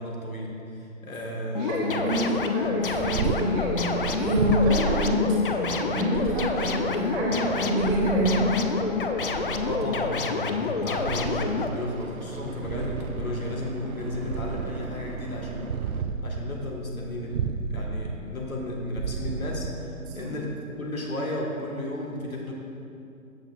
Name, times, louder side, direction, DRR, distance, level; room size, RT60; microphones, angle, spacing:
voice 1, 0.0-1.8 9.6-15.7 16.2-22.5, left 1 dB, 75° left, -1 dB, 1.6 m, -34 dB
sound 1, 1.5-11.7, left 4 dB, 40° left, 0.4 m, -28 dB
voice 2, 1.6-8.6 20.2-20.3, equal, 10° right, -6 dB, 0.9 m, -26 dB
Purr, 2.7-20.4, right 6 dB, 65° right, 0.5 m, -33 dB
sound 2, 6.5-6.7 11.4-16.0, right 3 dB, 80° right, 0.9 m, -40 dB
13.5 x 6.6 x 2.4 m, 2.6 s
figure-of-eight pair, 140°, 42 cm